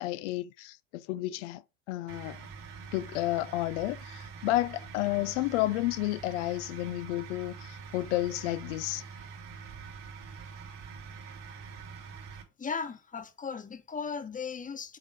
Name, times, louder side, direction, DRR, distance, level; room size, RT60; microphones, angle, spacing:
voice 1, 0.0-1.6 1.9-2.4 2.9-9.0, left 16 dB, 80° left, 0.5 m, -31 dB
sound 1, 2.1-12.4, right 5 dB, 75° right, 3.3 m, -45 dB
voice 2, 12.6-15.0, left 5 dB, 20° left, 1.1 m, -37 dB
7.8 x 3.6 x 5.0 m
hypercardioid pair, 85°, 35 cm